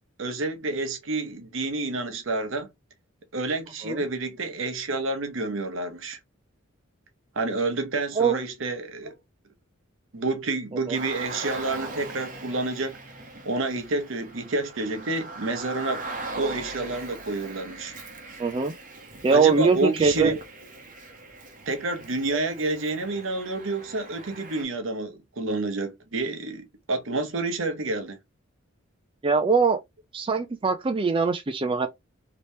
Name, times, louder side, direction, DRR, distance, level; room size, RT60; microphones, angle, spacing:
voice 1, 0.2-2.7 3.3-6.2 7.3-9.1 10.1-13.0 13.4-16.0 16.4-17.9 19.3-20.4 21.7-28.2, right 2 dB, 65° right, 0.9 m, -29 dB
Car, 10.9-24.6, right 2 dB, 40° right, 0.9 m, -40 dB
voice 2, 18.4-18.7 19.2-20.3 29.2-29.8 30.1-31.9, right 5 dB, 25° right, 0.4 m, -22 dB
3.2 x 2.9 x 2.7 m
head